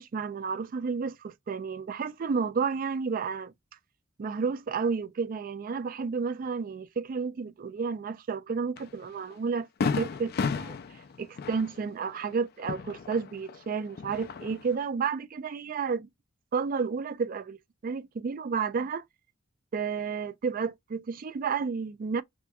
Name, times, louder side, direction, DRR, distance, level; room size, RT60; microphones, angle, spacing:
voice 1, 0.0-3.5 4.2-9.7 10.0-10.8 11.2-16.1 16.5-17.6 17.8-19.0 19.7-22.2, right 5 dB, 45° right, 0.3 m, -31 dB
Fireworks, 8.8-8.9 9.3-9.4 9.8-13.6 13.9-14.7, left 5 dB, 50° left, 0.4 m, -33 dB
3.3 x 2.8 x 2.3 m
head